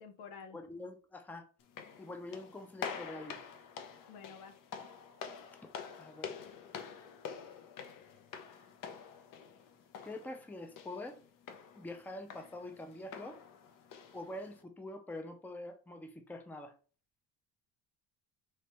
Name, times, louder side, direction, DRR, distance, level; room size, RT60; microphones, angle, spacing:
voice 1, 0.0-0.6 4.1-4.5, left 6 dB, 90° left, 0.8 m, -50 dB
voice 2, 0.5-1.5 2.0-3.4 6.0-6.4 10.0-11.2 11.7-13.4 14.1-16.7, left 1 dB, 5° left, 0.5 m, -45 dB
sound 1, 1.6-14.6, left 6 dB, 50° left, 0.7 m, -47 dB
3.2 x 3.2 x 2.9 m
supercardioid pair, 85°, 40 cm